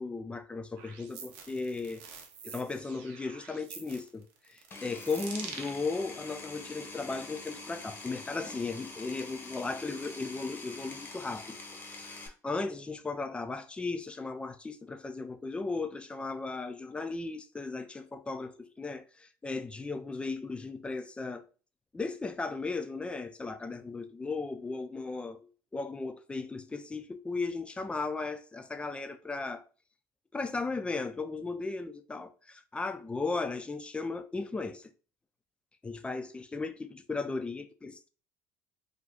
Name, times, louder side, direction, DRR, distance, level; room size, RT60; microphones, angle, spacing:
voice 1, 0.0-2.0 2.4-11.6 11.9-21.4 21.9-29.6 30.3-34.9 35.8-38.1, left 3 dB, 15° left, 0.4 m, -36 dB
sound 1, 0.8-5.8, right 6 dB, 85° right, 0.6 m, -46 dB
Power tool, 4.7-12.3, left 3 dB, 30° left, 0.8 m, -45 dB
2.5 x 2.4 x 3.4 m
supercardioid pair, 95°, 7 cm